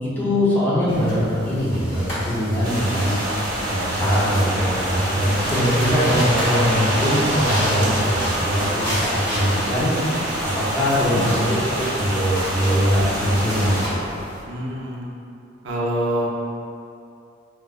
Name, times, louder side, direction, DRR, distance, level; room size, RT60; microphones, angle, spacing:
voice 1, 0.0-3.2 3.7-9.9 10.4-14.1, equal, 10° left, -9 dB, 0.7 m, -22 dB
sound 1, 0.9-14.4, equal, 50° left, 1.2 m, -32 dB
sound 2, 2.6-13.9, right 1 dB, 45° right, 0.8 m, -26 dB
voice 2, 14.5-15.1 15.6-16.3, right 1 dB, 75° right, -3 dB, 0.5 m, -26 dB
4.5 x 2.2 x 2.4 m, 2.6 s
head